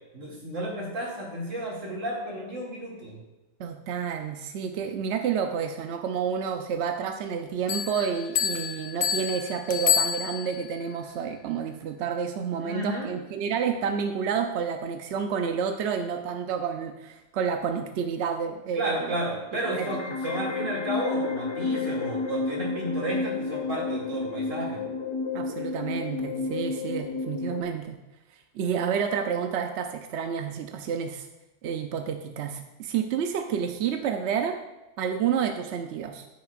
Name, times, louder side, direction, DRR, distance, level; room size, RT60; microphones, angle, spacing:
voice 1, 0.1-3.2 12.6-13.1 18.7-24.9, right 1 dB, 90° right, -4 dB, 2.9 m, -32 dB
voice 2, 3.6-19.1 19.6-20.0 25.3-28.0 28.5-31.3 31.6-34.6 35.0-36.3, right 7 dB, 70° right, 5 dB, 0.8 m, -29 dB
Bell, 7.7-10.8, left 8 dB, 75° left, 1.1 m, -28 dB
sound 1, 19.6-27.6, left 4 dB, 40° left, 0.4 m, -31 dB
13.5 x 6.2 x 2.4 m, 1.0 s
omnidirectional pair, 1.3 m